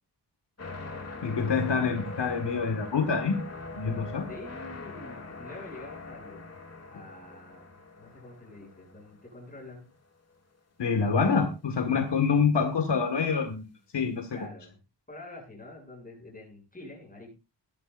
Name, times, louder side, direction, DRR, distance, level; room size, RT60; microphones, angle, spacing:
sound 1, 0.6-9.7 10.3-10.4, left 3 dB, 35° left, 2.5 m, -42 dB
voice 1, 1.2-3.4 3.7-4.3 10.8-13.6 13.9-14.4, left 5 dB, 75° left, 6 dB, 2.0 m, -26 dB
voice 2, 4.3-6.5 6.9-9.9 14.3-14.8 15.1-17.3, left 2 dB, 20° left, 0 dB, 7.6 m, -47 dB
19.0 x 13.0 x 2.6 m, 0.29 s
wide cardioid pair, 180°, 43 cm